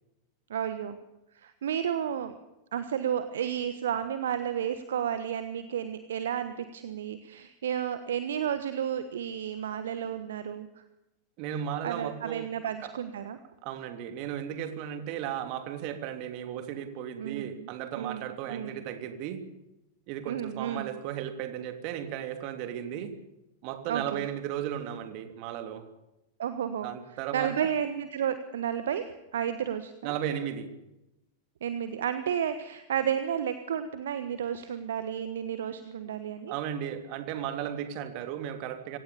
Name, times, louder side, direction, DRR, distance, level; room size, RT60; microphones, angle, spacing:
voice 1, 0.5-1.0 1.3-2.3 2.7-10.7 11.8-13.4 17.2-17.7 17.9-18.8 20.3-20.9 23.9-24.3 26.4-26.9 27.3-30.1 31.6-36.5, right 9 dB, 60° right, 11 dB, 1.3 m, -32 dB
voice 2, 11.4-12.5 12.8-12.9 13.6-19.4 20.1-23.1 23.6-25.8 26.8-27.5 30.0-30.7 36.5-39.0, right 10 dB, 45° right, 8 dB, 3.1 m, -35 dB
25.5 x 17.5 x 7.0 m, 0.91 s
figure-of-eight pair, 90°, 0 cm